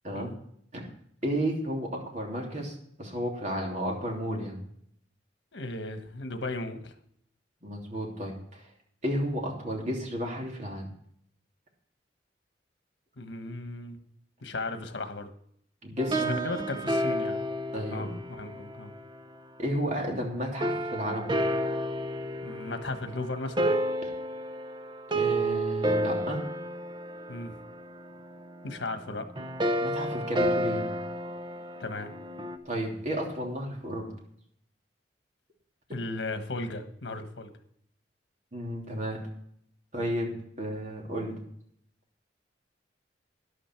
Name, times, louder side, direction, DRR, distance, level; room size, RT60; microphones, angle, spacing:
voice 1, 1.2-2.7 3.0-4.6 7.6-8.6 9.0-10.9 15.8-16.4 17.7-18.1 19.6-21.3 25.1-26.4 29.8-30.9 32.6-34.1 38.5-39.2 39.9-40.3 40.6-41.4, equal, 40° right, 0 dB, 3.0 m, -32 dB
voice 2, 5.5-6.9 13.2-14.0 14.4-15.3 16.3-17.4 17.9-18.9 22.4-23.7 27.3-27.6 28.6-29.3 31.8-32.1 35.9-37.5, left 2 dB, 90° left, 8 dB, 1.3 m, -36 dB
sound 1, 16.0-19.3 20.6-32.6, right 1 dB, 25° right, 0.9 m, -31 dB
12.5 x 11.0 x 4.5 m, 0.67 s
head